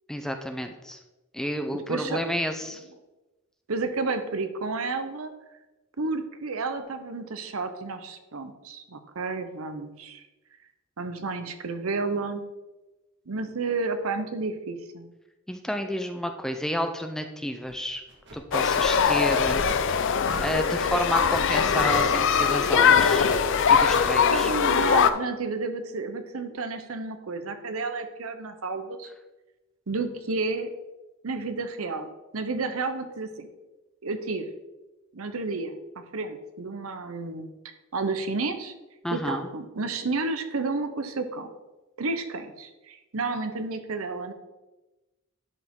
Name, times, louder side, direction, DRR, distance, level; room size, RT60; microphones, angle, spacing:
voice 1, 0.1-1.0 1.3-2.8 15.5-18.0 18.3-23.3 23.7-24.5 39.0-39.5, equal, 5° left, 6 dB, 0.5 m, -31 dB
voice 2, 1.7-2.3 3.7-5.3 6.0-10.2 11.0-12.4 13.3-15.1 24.3-29.1 29.9-30.7 31.2-33.5 34.0-34.5 35.1-35.8 36.1-37.5 37.9-38.7 39.1-41.5 42.0-44.3, right 3 dB, 80° right, 8 dB, 0.8 m, -31 dB
sound 1, 17.7-17.8 18.1-18.4 18.7-19.0 19.3-19.7 20.3-20.5 20.8-22.1 22.5-22.7 23.1-24.2, right 2 dB, 55° right, 1.6 m, -37 dB
sound 2, 18.5-25.1, left 6 dB, 60° left, 0.5 m, -21 dB
11.0 x 5.0 x 3.7 m, 1.1 s
head